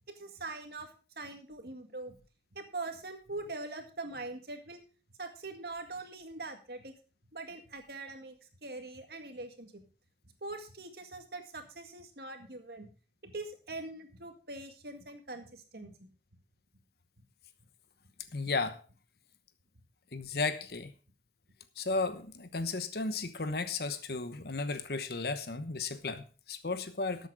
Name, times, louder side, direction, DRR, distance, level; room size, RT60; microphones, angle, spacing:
voice 1, 0.2-0.9 1.2-2.2 2.5-4.8 5.2-6.9 7.3-8.4 8.6-9.8 10.4-12.9 13.2-15.9, right 2 dB, 60° right, 6 dB, 2.0 m, -42 dB
voice 2, 18.3-18.8 20.1-20.9 21.8-27.3, left 3 dB, 60° left, 11 dB, 1.0 m, -34 dB
13.0 x 8.2 x 4.8 m, 0.37 s
head